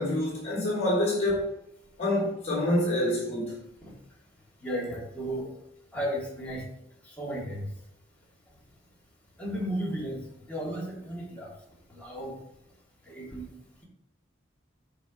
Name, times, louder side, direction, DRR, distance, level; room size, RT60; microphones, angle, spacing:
voice 1, 0.0-1.5 2.0-3.6, left 1 dB, 35° left, 3.6 m, -27 dB
voice 2, 4.6-5.5 5.9-6.6 7.0-7.7 9.4-11.5 11.9-12.3 13.1-13.5, equal, 10° left, 3.3 m, -34 dB
13.0 x 5.3 x 3.4 m
head